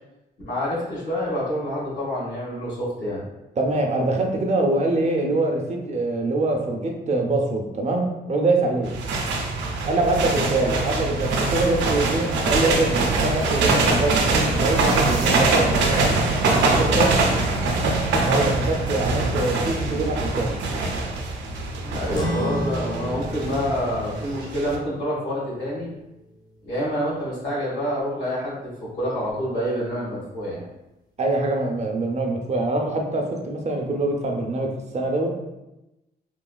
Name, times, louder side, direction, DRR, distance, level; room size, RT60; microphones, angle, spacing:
voice 1, 0.4-3.2 10.5-10.7 21.8-25.9 26.6-30.6, equal, 80° left, -6 dB, 1.4 m, -27 dB
voice 2, 3.6-8.9 9.9-16.2 16.7-17.1 18.2-20.6 31.2-35.3, right 2 dB, 40° right, 2 dB, 0.5 m, -24 dB
sound 1, 8.8-24.8, right 3 dB, 90° right, 0.4 m, -23 dB
sound 2, 22.1-27.0, equal, 20° left, 0.6 m, -33 dB
3.1 x 2.3 x 2.2 m, 0.95 s
cardioid pair, 85°, 18 cm